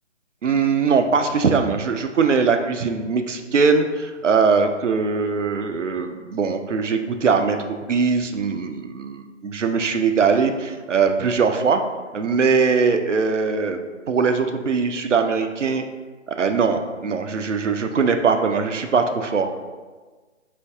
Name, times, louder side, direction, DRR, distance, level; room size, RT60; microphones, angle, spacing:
voice 1, 0.4-7.6 7.9-11.8 12.1-15.8 16.4-19.5, right 5 dB, 75° right, 6 dB, 0.5 m, -21 dB
4.4 x 2.5 x 3.4 m, 1.4 s
figure-of-eight pair, 150°, 37 cm